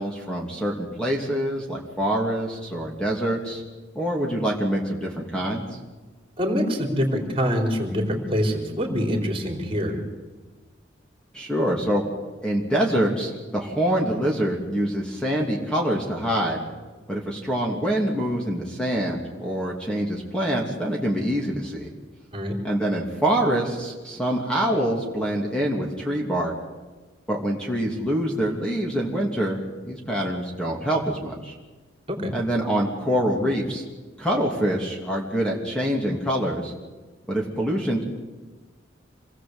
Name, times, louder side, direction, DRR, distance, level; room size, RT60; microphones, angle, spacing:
voice 1, 0.0-3.6 3.9-5.8 11.3-12.0 12.4-16.6 17.1-21.9 22.6-26.5 27.3-31.6 32.3-33.8 34.2-36.7 37.3-38.0, right 1 dB, 5° left, -1 dB, 2.9 m, -25 dB
voice 2, 6.4-10.0 22.3-22.5 32.1-32.3, equal, 30° right, 2 dB, 4.2 m, -25 dB
27.5 x 19.5 x 8.1 m, 1.3 s
head